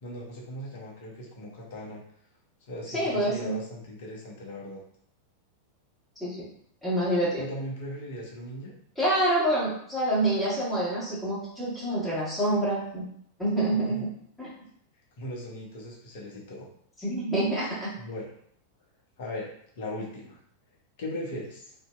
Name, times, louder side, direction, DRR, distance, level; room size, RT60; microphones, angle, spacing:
voice 1, 0.0-2.0 2.7-4.8 7.4-8.7 13.8-14.0 15.2-16.7 18.0-18.3 19.2-19.5 19.8-20.4 21.0-21.7, left 1 dB, 50° left, -2 dB, 0.8 m, -38 dB
voice 2, 2.9-3.6 6.2-6.4 6.8-7.4 9.0-13.0 13.4-13.9 14.4-14.6 17.0-17.9, right 1 dB, 5° left, -10 dB, 1.4 m, -27 dB
2.6 x 2.6 x 2.3 m, 0.66 s
figure-of-eight pair, 90°, 0 cm